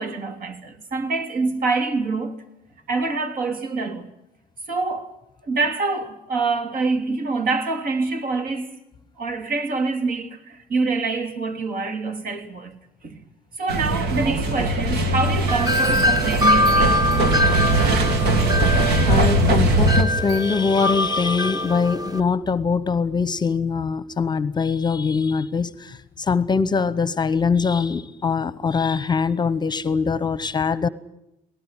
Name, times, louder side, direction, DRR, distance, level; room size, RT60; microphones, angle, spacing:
voice 1, 0.0-2.4 2.9-4.1 4.7-5.1 5.4-8.7 9.2-12.8 13.0-13.2 13.6-17.1, right 3 dB, 60° right, 3.1 m, -26 dB
sound 1, 13.7-20.0, right 2 dB, 80° right, 2.8 m, -20 dB
Wind chime, 15.5-22.2, left 1 dB, 20° right, 1.5 m, -23 dB
voice 2, 19.1-30.9, left 5 dB, 25° left, 0.9 m, -22 dB
19.5 x 18.5 x 9.9 m
cardioid pair, 110°, 17 cm